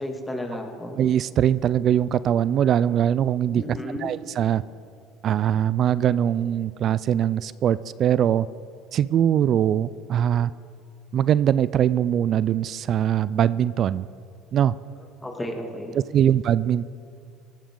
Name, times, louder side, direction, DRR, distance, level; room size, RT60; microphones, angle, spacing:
voice 1, 0.0-1.0 3.6-4.1 15.2-16.0, left 1 dB, 15° left, 2 dB, 2.4 m, -32 dB
voice 2, 1.0-4.6 5.2-8.5 8.9-10.5 11.1-14.1 14.5-14.7 15.9-16.9, right 10 dB, 50° right, 18 dB, 0.3 m, -22 dB
16.5 x 13.5 x 3.8 m, 2.3 s
supercardioid pair, 85°, 0 cm